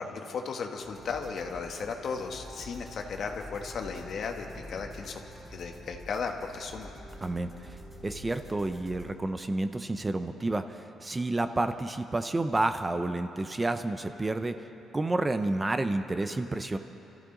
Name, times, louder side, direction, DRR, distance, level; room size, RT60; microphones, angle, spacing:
voice 1, 0.0-5.2 5.5-6.9, left 5 dB, 60° left, 3 dB, 1.4 m, -35 dB
sound 1, 0.8-9.1, equal, ahead, 3.4 m, -47 dB
voice 2, 7.2-7.8 8.0-14.7 14.9-16.8, right 2 dB, 20° right, 9 dB, 0.7 m, -30 dB
25.5 x 14.0 x 3.9 m, 3.0 s
cardioid pair, 90°, 0 cm